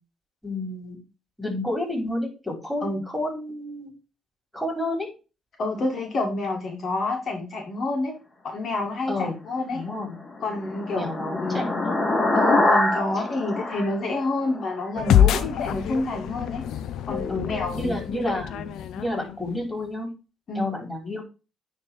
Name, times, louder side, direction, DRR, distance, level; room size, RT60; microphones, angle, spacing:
voice 1, 0.4-1.0 1.4-3.9 4.5-5.1 9.1-9.4 9.7-10.1 10.9-11.9 17.3-17.5 17.7-20.1 20.5-21.2, left 1 dB, ahead, 1 dB, 4.3 m, -30 dB
voice 2, 5.6-8.2 8.4-9.8 10.4-11.6 12.3-16.6 17.1-18.0 20.5-20.7, left 2 dB, 55° left, 1 dB, 1.8 m, -28 dB
sound 1, 10.0-14.8, left 2 dB, 40° left, 3.4 m, -25 dB
sound 2, 15.0-19.6, left 10 dB, 80° left, 0.6 m, -25 dB
9.6 x 3.3 x 4.6 m, 0.31 s
cardioid pair, 90°, 0 cm